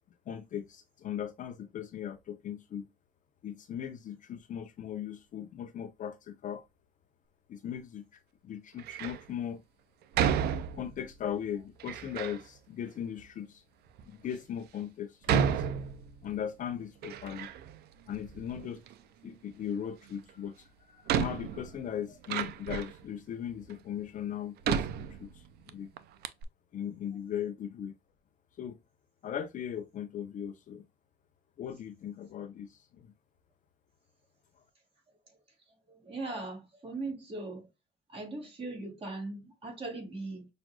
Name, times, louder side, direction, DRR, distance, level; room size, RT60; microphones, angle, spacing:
voice 1, 0.3-2.9 3.4-6.6 7.5-9.6 10.8-13.6 14.1-15.6 16.2-17.5 18.1-18.8 19.2-24.9 25.2-25.9 26.7-27.9 28.6-28.8 29.2-30.8 31.6-33.1, left 9 dB, 50° left, 0.6 m, -38 dB
Door, 8.8-9.3 10.1-11.1 11.8-12.4 13.2-13.3 14.0-14.1 15.2-16.4 16.7-17.8 18.1-18.9 20.3-20.4 21.1-23.0 23.7-23.8 24.6-25.7 26.0-26.1 26.2-26.4, right 8 dB, 70° right, 0.5 m, -32 dB
voice 2, 35.9-37.7 38.1-40.5, right 2 dB, 35° right, 2.3 m, -39 dB
6.0 x 2.5 x 2.3 m
cardioid pair, 110°, 17 cm